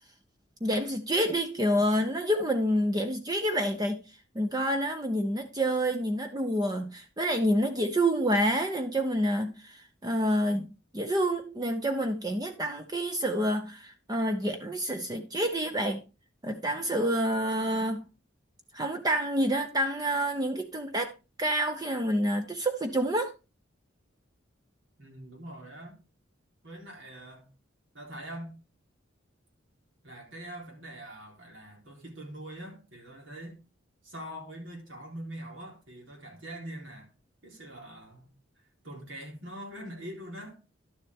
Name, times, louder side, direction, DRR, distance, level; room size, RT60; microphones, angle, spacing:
voice 1, 0.6-4.0 4.3-16.0 16.4-18.0 18.7-21.1 21.4-23.3, equal, 20° right, 0.7 m, -28 dB
voice 2, 25.0-26.0 26.6-27.5 27.9-28.5 30.0-33.6 34.0-37.1 37.4-38.3 38.8-40.6, right 1 dB, 75° right, 3.8 m, -43 dB
11.5 x 7.2 x 3.5 m
head